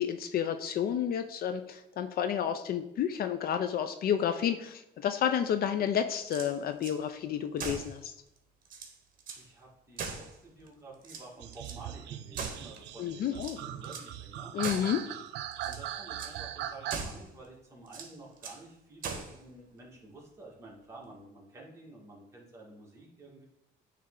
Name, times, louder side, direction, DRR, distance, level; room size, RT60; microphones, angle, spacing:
voice 1, 0.0-8.1 13.0-13.6 14.5-15.0, left 9 dB, 60° left, 9 dB, 0.4 m, -30 dB
sound 1, 6.2-7.0 7.6-8.0 8.4-8.5 8.7-9.5 10.0-10.7 11.0-11.8 12.3-12.9 13.4-14.1 14.6-15.0 15.5-15.9 16.2-16.4 16.9-17.3 17.9-18.6 19.0-19.4, right 5 dB, 50° right, 1.0 m, -40 dB
voice 2, 9.4-14.6 15.6-23.5, right 2 dB, 15° right, -3 dB, 1.8 m, -51 dB
sound 2, 11.4-17.0, right 11 dB, 80° right, 0.4 m, -40 dB
8.7 x 3.3 x 3.7 m, 0.87 s
cardioid pair, 125°, 18 cm